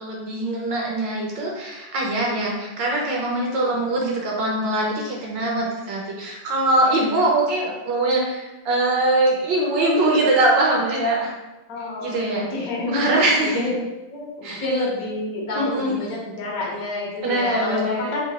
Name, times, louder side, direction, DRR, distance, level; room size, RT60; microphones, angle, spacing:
voice 1, 0.0-11.3 12.0-12.4 12.9-13.7 14.4-14.6 15.6-15.9 17.2-18.1, right 2 dB, 70° right, -2 dB, 1.1 m, -22 dB
voice 2, 11.7-13.8 14.1-18.2, left 2 dB, 55° left, -4 dB, 1.1 m, -29 dB
3.9 x 2.2 x 4.0 m, 1.1 s
omnidirectional pair, 2.4 m